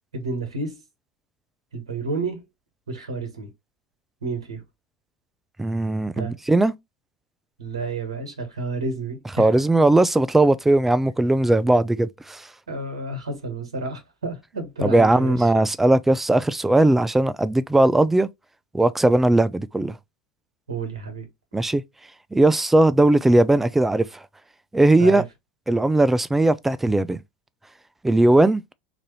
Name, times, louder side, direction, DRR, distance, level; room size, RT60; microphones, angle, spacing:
voice 1, 0.1-0.8 1.7-2.5 2.9-3.5 4.2-4.6 6.1-6.4 7.6-9.5 12.7-15.5 20.7-21.3 25.0-25.2, right 3 dB, 80° right, 1.2 m, -30 dB
voice 2, 5.6-6.7 9.4-12.4 14.8-18.3 18.7-20.0 21.5-21.8 22.3-24.0 24.7-25.2 25.7-27.2 28.0-28.6, right 2 dB, 10° right, 0.4 m, -18 dB
3.9 x 2.6 x 3.0 m
hypercardioid pair, 80°, 3 cm